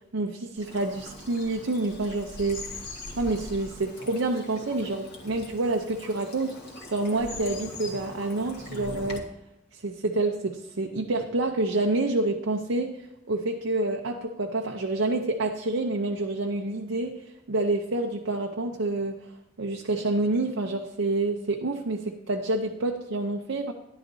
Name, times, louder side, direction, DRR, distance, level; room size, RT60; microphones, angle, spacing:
voice 1, 0.1-2.9 3.2-6.6 6.9-9.3 9.7-13.0 13.3-19.2 19.6-23.7, right 2 dB, 80° right, 3 dB, 0.7 m, -28 dB
Bird vocalization bird call bird song / Stream, 0.6-9.2, left 1 dB, 55° left, 1.9 m, -41 dB
14.0 x 11.0 x 2.7 m, 0.97 s
head